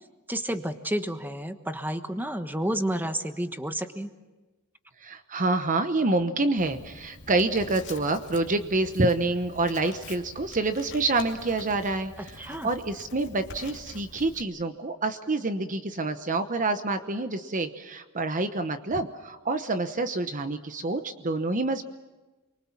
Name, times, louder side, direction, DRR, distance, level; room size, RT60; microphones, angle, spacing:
voice 1, 0.3-4.1 12.4-12.7, right 1 dB, 10° right, 8 dB, 1.3 m, -30 dB
voice 2, 5.0-21.8, right 2 dB, 35° right, 8 dB, 1.0 m, -27 dB
Writing, 6.6-14.4, left 3 dB, 55° left, 2.5 m, -46 dB
29.5 x 23.5 x 7.3 m, 1.2 s
head